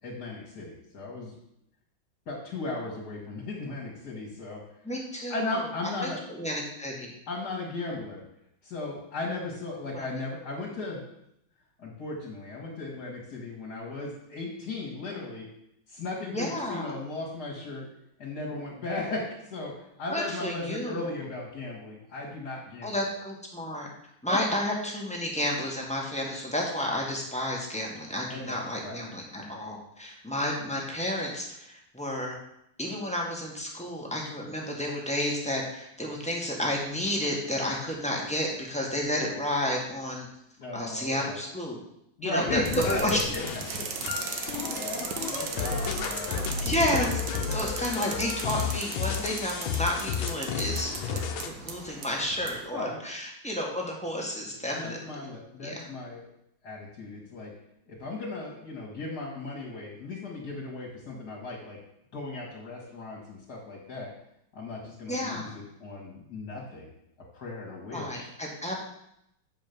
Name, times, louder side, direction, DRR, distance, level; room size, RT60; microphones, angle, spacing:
voice 1, 0.0-1.3 2.3-4.6 5.3-6.2 7.3-8.2 8.6-11.0 11.8-15.5 15.9-17.9 18.2-23.1 24.2-24.4 28.3-29.0 40.6-41.4 42.2-43.9 44.3-44.4 44.6-46.4 47.5-48.3 52.7-53.0 54.7-56.2 56.6-57.5 57.9-61.8 62.1-64.1 64.5-66.9 67.3-68.3, left 2 dB, 55° left, -4 dB, 2.3 m, -36 dB
voice 2, 4.8-5.6 6.0-7.1 9.9-10.1 16.3-16.9 20.1-21.1 22.8-23.9 24.2-32.4 32.8-40.3 40.7-41.8 42.2-43.2 46.6-47.2 47.5-55.3 55.6-55.9 65.1-65.5 67.9-68.8, left 1 dB, 5° left, -2 dB, 1.5 m, -31 dB
sound 1, 42.5-51.5, left 7 dB, 85° left, 1.6 m, -33 dB
sound 2, 42.7-52.6, right 5 dB, 70° right, 1.7 m, -37 dB
7.7 x 5.1 x 6.8 m, 0.78 s
omnidirectional pair, 2.1 m